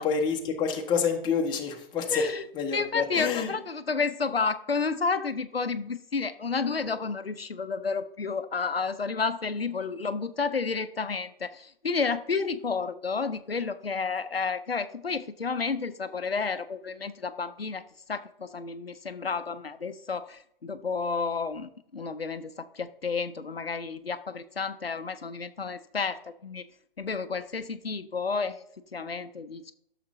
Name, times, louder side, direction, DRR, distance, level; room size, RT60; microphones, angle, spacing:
voice 1, 0.0-2.2 2.5-3.5, left 6 dB, 15° left, 2 dB, 1.1 m, -28 dB
voice 2, 2.1-2.4 2.7-17.8 18.1-26.6 27.0-28.6 28.9-29.7, left 4 dB, 85° left, 12 dB, 0.6 m, -31 dB
13.0 x 6.6 x 2.7 m, 0.72 s
figure-of-eight pair, 120°, 29 cm